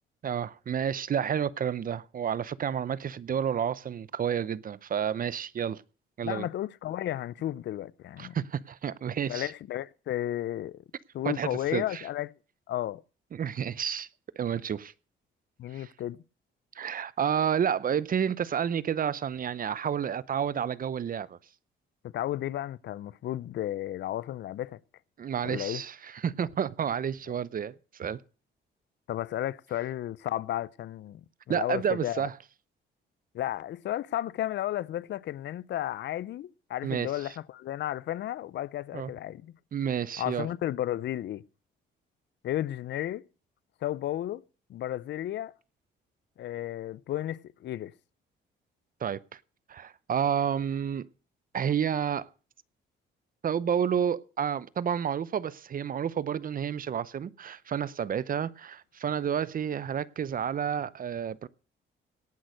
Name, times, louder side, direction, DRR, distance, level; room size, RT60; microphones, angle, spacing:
voice 1, 0.2-5.8 6.2-6.5 8.2-9.5 11.2-12.0 13.3-14.1 14.4-14.9 15.7-15.9 16.8-21.4 25.2-28.2 31.5-32.3 36.8-37.1 38.9-39.1 39.7-40.5 49.0-49.4 49.7-51.1 51.5-52.3 53.4-61.5, right 8 dB, 45° right, 0.7 m, -30 dB
voice 2, 6.2-8.4 9.3-10.8 11.1-12.3 12.7-13.0 15.6-16.2 22.0-24.8 25.4-25.8 27.3-27.4 29.1-31.2 31.5-32.2 33.3-39.5 40.2-41.4 42.4-43.2 43.8-44.4 44.7-45.5 46.4-47.9, left 13 dB, 65° left, 0.5 m, -33 dB
18.0 x 6.3 x 6.4 m
cardioid pair, 90°, 20 cm